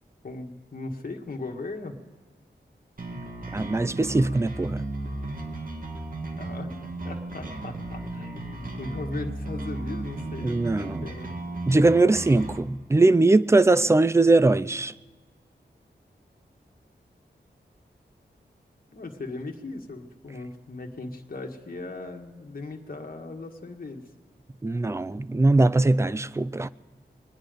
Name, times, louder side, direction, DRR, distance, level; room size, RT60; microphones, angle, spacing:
voice 1, 0.2-2.0 6.4-11.4 18.9-24.0, left 3 dB, 50° left, 1.7 m, -38 dB
sound 1, 3.0-12.6, right 2 dB, 50° right, 2.1 m, -35 dB
voice 2, 3.5-4.8 10.4-11.1 11.7-14.9 24.6-26.7, right 2 dB, 15° right, 0.4 m, -21 dB
24.5 x 9.9 x 5.2 m
wide cardioid pair, 80°, 18 cm